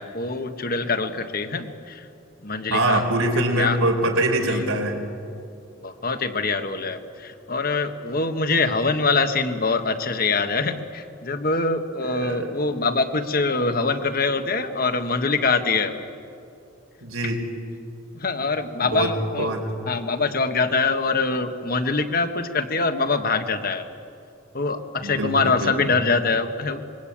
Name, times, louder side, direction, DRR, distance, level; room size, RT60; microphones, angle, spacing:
voice 1, 0.0-2.1 2.4-3.0 3.6-3.8 4.5-4.6 5.8-15.9 18.1-19.5 19.9-23.8 24.5-26.8, left 3 dB, 45° left, 8 dB, 1.5 m, -24 dB
voice 2, 2.7-5.0 12.0-12.5 17.0-17.4 18.8-19.1 19.4-19.7 25.0-25.7, right 1 dB, 90° right, 2 dB, 4.4 m, -23 dB
26.0 x 22.5 x 8.8 m, 2.6 s
head